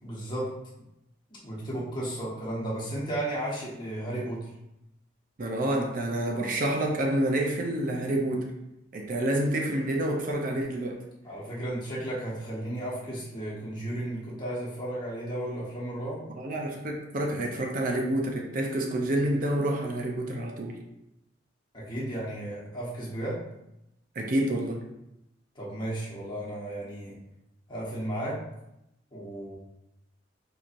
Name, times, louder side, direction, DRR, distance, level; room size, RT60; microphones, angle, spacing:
voice 1, 0.0-0.5 1.3-4.5 11.2-16.2 17.4-17.5 21.7-23.4 25.5-27.1 27.7-28.4 29.1-29.5, right 1 dB, 25° left, -6 dB, 1.1 m, -34 dB
voice 2, 5.4-8.5 8.9-11.0 16.3-20.8 24.2-24.8, right 1 dB, 45° right, 1 dB, 0.5 m, -28 dB
4.4 x 2.7 x 2.5 m, 0.86 s
head